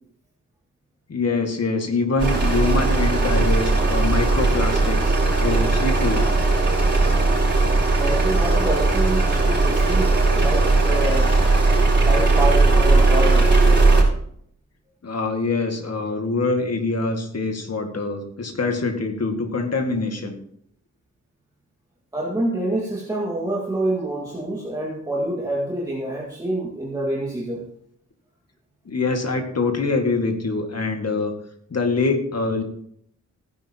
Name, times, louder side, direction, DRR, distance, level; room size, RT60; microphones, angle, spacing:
voice 1, 1.1-6.3 15.0-20.3 28.9-31.3 31.7-32.6, left 3 dB, 60° left, 4 dB, 2.0 m, -24 dB
sound 1, 2.2-14.0, right 3 dB, 40° right, 5.3 m, -18 dB
voice 2, 8.0-11.3 12.1-13.5 22.1-27.6, right 1 dB, 10° right, -4 dB, 2.0 m, -26 dB
16.0 x 10.0 x 2.9 m, 0.66 s
wide cardioid pair, 130°, 29 cm